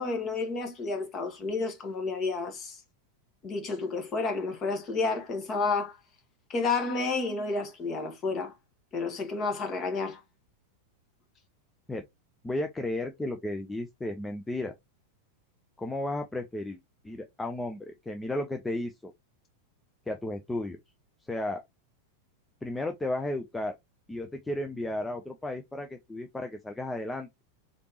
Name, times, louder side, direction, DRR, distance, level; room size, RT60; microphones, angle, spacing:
voice 1, 0.0-2.8 3.4-6.0 6.5-8.5 8.9-10.2, left 3 dB, 30° left, 1.4 m, -30 dB
voice 2, 12.4-14.7 15.8-16.8 17.0-19.1 20.1-20.8 21.3-21.6 22.6-23.8 24.1-27.3, left 1 dB, 10° left, 0.5 m, -33 dB
3.9 x 3.4 x 3.0 m
figure-of-eight pair, 90°, 0 cm